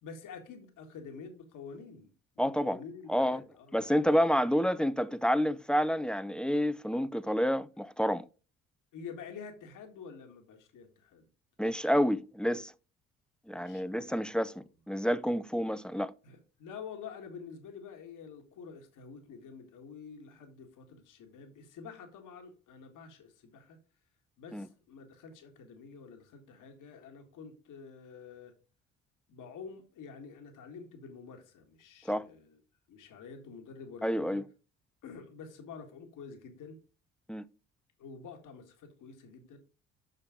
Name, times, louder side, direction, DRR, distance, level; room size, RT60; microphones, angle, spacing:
voice 1, 0.0-2.1 2.4-4.5 8.9-11.2 13.5-14.1 16.2-23.8 24.4-28.5 29.3-32.6 32.9-34.4 35.0-36.7 38.0-39.6, left 5 dB, 65° left, 1.8 m, -48 dB
voice 2, 2.4-2.8 3.1-3.4 3.7-8.2 11.6-12.7 13.5-16.1 24.5-24.7 32.1-32.3 34.0-34.5 37.3-37.5, equal, 5° left, 0.6 m, -29 dB
6.7 x 6.0 x 4.9 m
hypercardioid pair, 50°, 34 cm